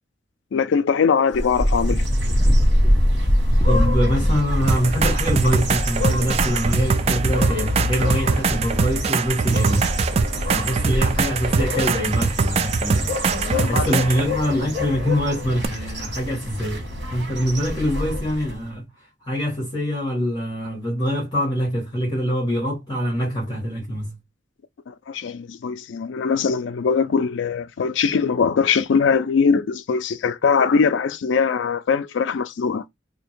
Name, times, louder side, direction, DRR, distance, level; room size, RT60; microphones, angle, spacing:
voice 1, 0.5-2.0 10.3-10.6 13.4-13.9 24.9-32.8, left 5 dB, 75° left, 0.4 m, -21 dB
Wind, 1.3-7.3, equal, 5° left, 0.8 m, -21 dB
sound 1, 1.3-18.6, left 1 dB, 90° right, 1.3 m, -28 dB
voice 2, 3.6-9.8 10.5-16.8 17.1-18.8 19.2-24.1, equal, 25° left, 1.2 m, -24 dB
sound 2, 4.7-14.3 15.6-15.7, right 5 dB, 35° right, 0.3 m, -23 dB
2.7 x 2.6 x 4.3 m
head